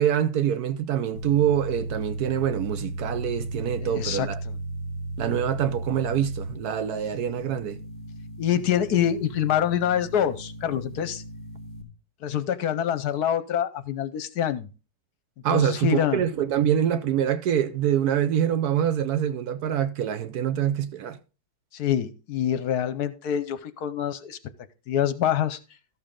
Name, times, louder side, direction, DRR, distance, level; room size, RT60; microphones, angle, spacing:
voice 1, 0.0-4.4 5.2-7.8 15.4-21.2, right 9 dB, 70° right, 1.0 m, -25 dB
sound 1, 1.1-11.8, right 2 dB, 85° right, 2.9 m, -35 dB
voice 2, 3.8-4.3 8.4-11.2 12.2-14.7 15.5-16.2 21.7-24.4 24.9-25.6, left 9 dB, 70° left, 1.1 m, -25 dB
13.0 x 6.9 x 3.7 m
omnidirectional pair, 1.9 m